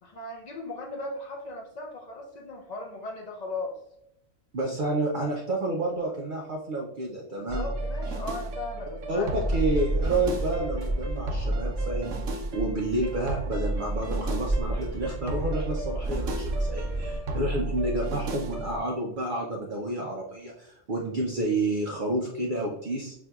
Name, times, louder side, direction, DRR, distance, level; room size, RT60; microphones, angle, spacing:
voice 1, 0.0-3.8 7.4-9.3, left 2 dB, 70° left, 1 dB, 0.4 m, -37 dB
voice 2, 4.5-7.7 9.1-23.1, right 2 dB, 55° right, -1 dB, 0.6 m, -30 dB
sound 1, 7.5-18.8, right 1 dB, 70° right, 1.0 m, -33 dB
sound 2, 9.4-17.2, right 2 dB, 5° left, 0.9 m, -32 dB
5.9 x 2.7 x 2.3 m, 0.76 s
omnidirectional pair, 1.4 m